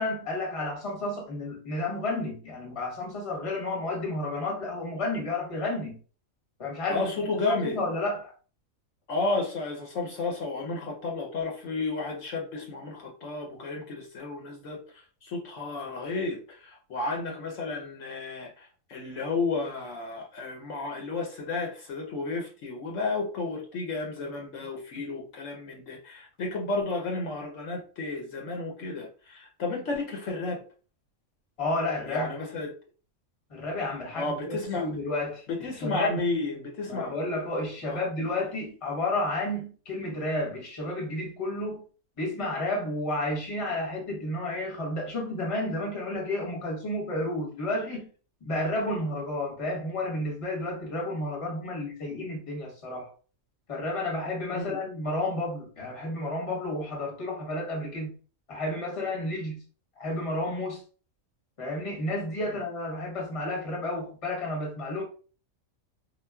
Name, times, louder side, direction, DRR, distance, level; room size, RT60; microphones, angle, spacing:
voice 1, 0.0-6.0 6.6-7.0 7.3-8.3 31.6-32.3 33.5-35.4 35.8-36.2 36.9-41.8 42.2-48.1 48.4-53.1 53.7-58.2 58.5-59.6 60.0-60.8 61.6-65.0, left 1 dB, 30° left, 0.9 m, -31 dB
voice 2, 6.9-7.8 9.1-14.8 15.2-30.6 32.1-32.7 34.1-34.9 35.5-37.1 37.9-38.0 54.5-54.8 62.4-62.6, left 3 dB, 70° left, 1.0 m, -32 dB
3.7 x 2.4 x 2.2 m
omnidirectional pair, 1.4 m